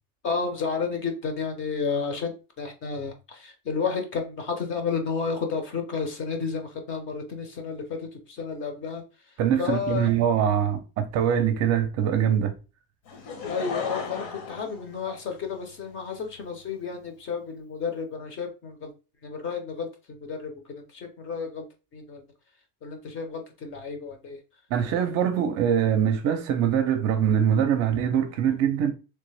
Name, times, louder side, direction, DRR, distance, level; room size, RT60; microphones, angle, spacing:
voice 1, 0.2-9.0 9.6-10.1 13.5-18.9 19.2-21.7 21.9-22.2 22.8-24.4, left 5 dB, 30° left, 0.6 m, -31 dB
voice 2, 9.4-12.5 24.7-28.9, right 8 dB, 40° right, 0.5 m, -23 dB
Laughter / Crowd, 13.1-15.7 16.4-16.5, left 5 dB, 65° left, 1.0 m, -35 dB
3.3 x 2.9 x 3.2 m
cardioid pair, 165°, 39 cm